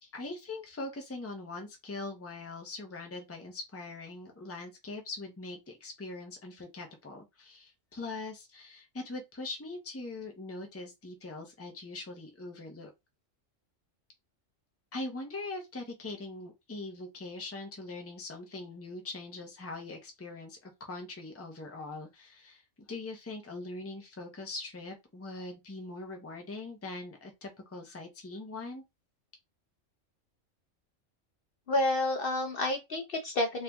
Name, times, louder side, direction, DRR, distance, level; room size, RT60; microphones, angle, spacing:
voice 1, 0.0-12.9 14.9-22.6 22.9-28.8, left 2 dB, 15° left, 0.7 m, -42 dB
voice 2, 31.7-33.6, left 1 dB, 55° left, 0.8 m, -29 dB
3.3 x 2.8 x 3.5 m
omnidirectional pair, 1.3 m